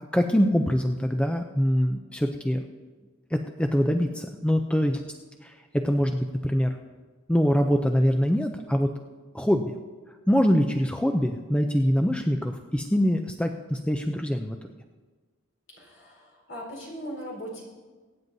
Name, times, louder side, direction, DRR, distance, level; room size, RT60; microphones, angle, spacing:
voice 1, 0.1-2.6 3.3-5.0 5.4-6.8 7.3-8.9 9.3-9.7 10.3-14.6, equal, 5° left, 5 dB, 0.4 m, -24 dB
voice 2, 15.7-17.6, equal, 60° left, -2 dB, 4.2 m, -39 dB
23.0 x 9.5 x 2.7 m, 1.4 s
head